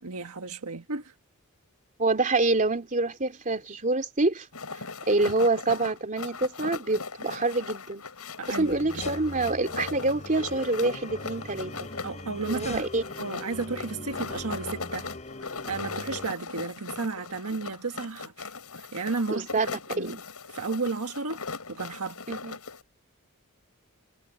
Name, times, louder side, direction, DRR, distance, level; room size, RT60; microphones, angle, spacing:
voice 1, 0.0-1.1 8.4-9.1 12.0-12.8 13.2-15.1 15.6-19.5 19.9-20.2 20.5-21.4 21.7-22.2, right 4 dB, 80° right, 1.5 m, -33 dB
voice 2, 2.0-4.5 5.1-8.0 8.6-11.9 12.5-13.0 19.3-19.7 20.0-20.2 22.3-22.6, right 2 dB, 35° right, 3.3 m, -26 dB
sound 1, 4.5-22.8, left 4 dB, 80° left, 6.0 m, -39 dB
sound 2, 8.6-16.3, left 2 dB, 30° left, 4.7 m, -41 dB
head